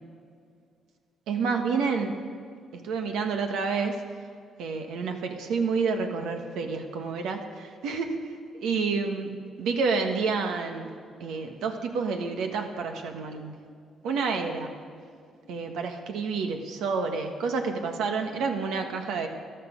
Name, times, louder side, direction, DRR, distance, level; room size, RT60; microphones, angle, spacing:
voice 1, 1.3-2.2 2.7-4.0 4.6-8.3 8.6-9.3 9.6-10.9 11.2-13.6 14.0-14.8 15.5-19.3, right 4 dB, 85° right, 4 dB, 1.5 m, -29 dB
14.0 x 12.0 x 5.2 m, 2.2 s
cardioid pair, 90°, 0 cm